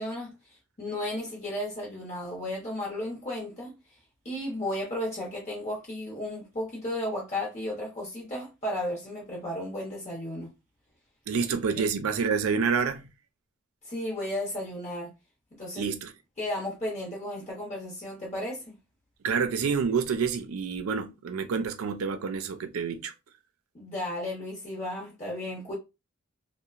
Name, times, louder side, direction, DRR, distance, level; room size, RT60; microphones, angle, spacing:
voice 1, 0.0-3.8 4.2-10.5 11.8-11.9 13.8-15.1 15.5-15.9 16.4-18.7 23.7-25.7, left 1 dB, 35° left, 0.8 m, -34 dB
voice 2, 11.3-13.1 15.8-16.1 19.2-23.1, right 5 dB, 85° right, 0.4 m, -28 dB
2.8 x 2.0 x 2.4 m
head